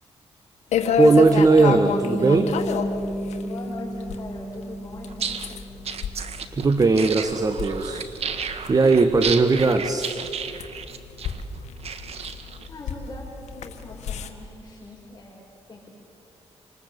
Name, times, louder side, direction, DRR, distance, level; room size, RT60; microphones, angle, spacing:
sound 1, 0.7-14.3, left 7 dB, 80° left, 1.8 m, -30 dB
voice 1, 1.0-2.5 6.5-8.1 8.7-10.1, right 3 dB, 35° right, 8 dB, 1.5 m, -18 dB
Bass guitar, 1.9-6.2, right 1 dB, ahead, 2.3 m, -33 dB
voice 2, 3.4-5.7 12.7-15.9, left 2 dB, 30° left, -5 dB, 5.7 m, -41 dB
sound 2, 5.1-12.7, right 6 dB, 65° right, 1.8 m, -33 dB
27.5 x 20.5 x 8.3 m, 2.7 s
cardioid pair, 80°, 11 cm